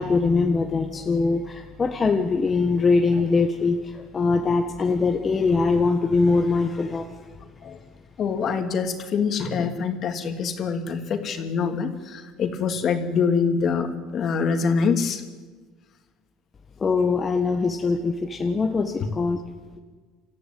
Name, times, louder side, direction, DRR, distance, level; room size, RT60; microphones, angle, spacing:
voice 1, 0.0-7.1 16.8-19.4, left 4 dB, 25° left, 3 dB, 1.5 m, -22 dB
voice 2, 8.2-15.2, left 5 dB, 45° left, 5 dB, 2.9 m, -25 dB
27.0 x 14.0 x 9.4 m, 1.4 s
supercardioid pair, 105°, 0 cm